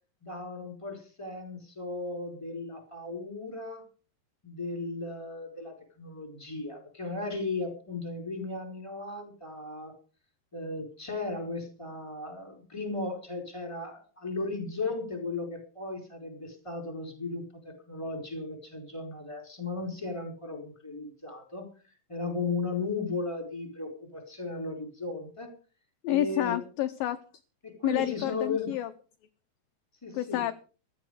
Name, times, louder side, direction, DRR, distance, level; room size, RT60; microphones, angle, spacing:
voice 1, 0.2-3.8 4.4-9.9 10.5-21.7 22.1-25.5 26.1-26.6 27.6-28.7 30.0-30.4, left 3 dB, 5° left, 4 dB, 4.0 m, -36 dB
voice 2, 26.0-27.2 27.8-28.9 30.1-30.5, left 14 dB, 75° left, 9 dB, 2.1 m, -29 dB
15.0 x 13.0 x 5.0 m, 0.38 s
omnidirectional pair, 4.9 m